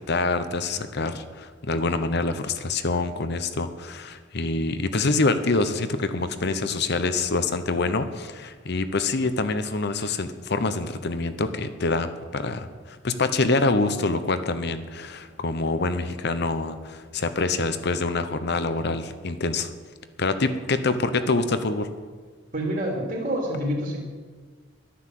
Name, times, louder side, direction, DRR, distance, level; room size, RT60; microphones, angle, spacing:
voice 1, 0.0-19.7 20.2-21.9, left 3 dB, 60° left, 10 dB, 1.0 m, -26 dB
voice 2, 22.5-24.0, equal, 45° right, -3 dB, 3.0 m, -27 dB
11.5 x 10.0 x 7.7 m, 1.5 s
head